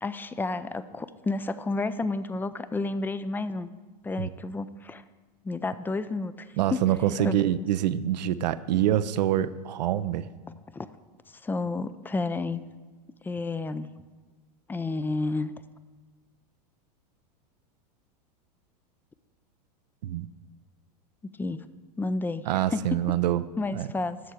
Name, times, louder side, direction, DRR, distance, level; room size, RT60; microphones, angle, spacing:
voice 1, 0.0-3.7 4.0-5.0 5.4-6.8 7.2-7.4 10.7-10.9 11.3-12.6 13.2-13.9 14.7-15.5 21.2-21.6 22.0-22.4 22.7-23.0 23.6-24.2, left 3 dB, 10° left, 14 dB, 0.4 m, -31 dB
voice 2, 6.6-10.3 20.0-20.3 22.5-23.4 23.7-23.9, right 12 dB, 80° right, 14 dB, 0.5 m, -25 dB
12.5 x 4.5 x 8.5 m, 1.4 s
hypercardioid pair, 120°, 21 cm